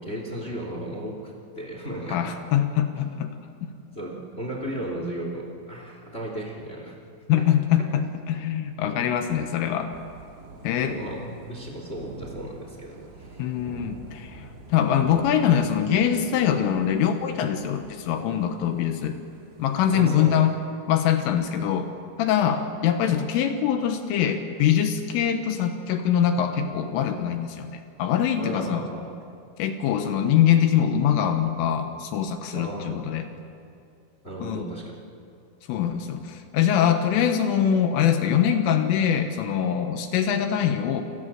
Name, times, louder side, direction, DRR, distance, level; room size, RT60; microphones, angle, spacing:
voice 1, 0.0-2.3 3.9-7.0 7.4-7.5 7.8-7.9 10.8-13.4 19.9-20.4 22.4-22.5 28.4-29.2 32.5-33.1 34.2-34.9, right 1 dB, 15° left, 1 dB, 2.2 m, -35 dB
voice 2, 2.1-3.7 7.3-9.9 10.6-11.0 13.4-19.2 19.6-20.6 20.9-21.9 22.2-28.9 29.6-33.3 34.4-34.7 35.7-41.0, left 9 dB, 75° left, 7 dB, 3.6 m, -23 dB
Thunder / Rain, 9.9-20.5, right 1 dB, 60° right, 4.9 m, -47 dB
29.0 x 21.5 x 7.6 m, 2.5 s
omnidirectional pair, 6.0 m